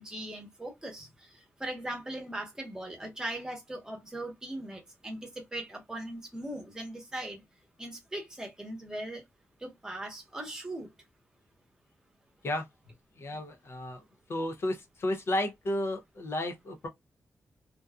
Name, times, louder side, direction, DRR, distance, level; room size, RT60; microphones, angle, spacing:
voice 1, 0.0-7.4 7.8-9.2 9.6-10.9, right 1 dB, 10° right, 0.9 m, -39 dB
voice 2, 13.2-14.0 14.3-16.9, left 1 dB, 50° left, 0.5 m, -32 dB
2.5 x 2.2 x 2.2 m
wide cardioid pair, 135°, 5 cm